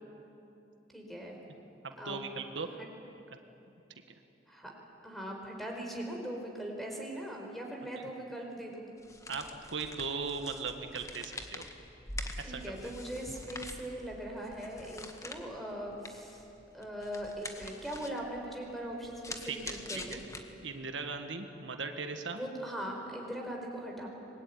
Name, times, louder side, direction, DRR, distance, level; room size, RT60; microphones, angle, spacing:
voice 1, 0.9-1.4 2.0-2.2 2.8-2.9 4.5-4.7 5.0-8.9 12.4-16.5 16.7-20.2 22.3-24.1, right 1 dB, ahead, 0 dB, 4.7 m, -40 dB
voice 2, 1.8-2.7 9.3-11.6 12.4-12.9 19.4-20.2 20.6-22.4, right 4 dB, 85° right, 6 dB, 1.6 m, -38 dB
sound 1, 9.0-20.9, left 2 dB, 20° left, 1.7 m, -46 dB
25.0 x 21.5 x 9.8 m, 2.8 s
head